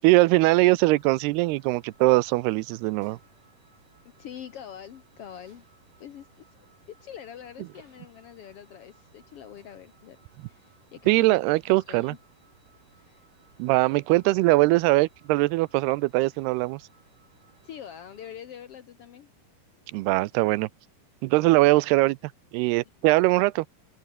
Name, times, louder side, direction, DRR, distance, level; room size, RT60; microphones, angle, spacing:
voice 1, 0.0-3.2 11.1-12.1 13.6-16.8 19.9-20.7 21.2-22.2 22.5-23.7, right 21 dB, 90° right, 2.7 m, -21 dB
sound 1, 0.8-18.4, right 4 dB, 55° right, 7.9 m, -60 dB
voice 2, 4.0-5.6 6.0-10.2 10.5-11.4 11.7-12.2 12.9-13.3 17.6-19.3, left 9 dB, 75° left, 1.3 m, -44 dB
open air
omnidirectional pair, 4.6 m